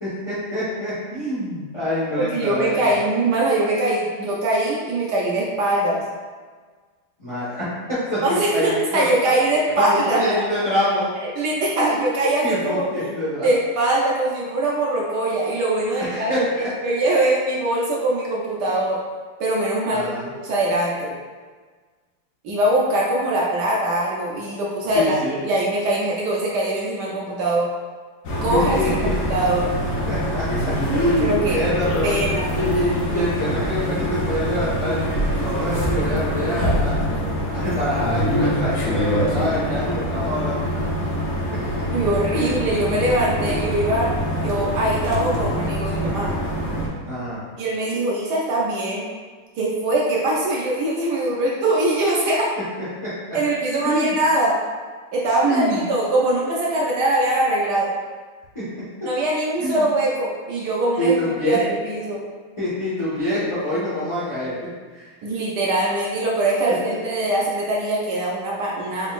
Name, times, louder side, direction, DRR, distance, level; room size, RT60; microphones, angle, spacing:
voice 1, 0.0-3.0 7.2-7.6 7.9-8.2 8.5-9.0 9.7-11.0 11.8-12.1 12.4-13.5 16.0-16.7 19.9-20.3 24.8-25.3 28.5-29.1 30.1-32.1 32.5-37.0 37.5-40.6 40.9-41.0 42.3-42.7 43.4-43.5 47.1-47.4 53.0-53.1 53.8-54.2 55.4-55.8 59.6-59.8 61.0-61.6 62.6-64.6 64.9-65.1, equal, 40° left, -11 dB, 0.4 m, -25 dB
voice 2, 2.2-6.0 8.2-10.2 11.2-13.1 13.4-16.4 16.8-19.0 19.4-20.0 20.4-21.1 22.4-27.7 28.4-29.7 31.2-31.6 32.0-32.5 41.9-44.1 44.4-46.3 47.6-49.0 49.6-52.5 53.3-54.6 55.1-57.9 59.0-61.1 61.4-62.2 65.2-69.1, right 1 dB, 80° right, -4 dB, 0.9 m, -22 dB
sound 1, 28.2-46.9, equal, 75° left, 0.7 m, -24 dB
3.9 x 3.8 x 2.4 m, 1.5 s
omnidirectional pair, 2.4 m